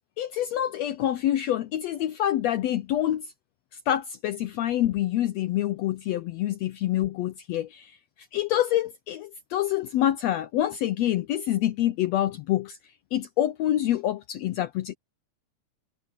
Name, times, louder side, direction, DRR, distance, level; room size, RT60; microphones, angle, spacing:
voice 1, 0.2-3.3 3.9-8.0 8.3-12.8 13.1-14.9, left 12 dB, 75° left, 1.5 m, -26 dB
omnidirectional pair, 3.7 m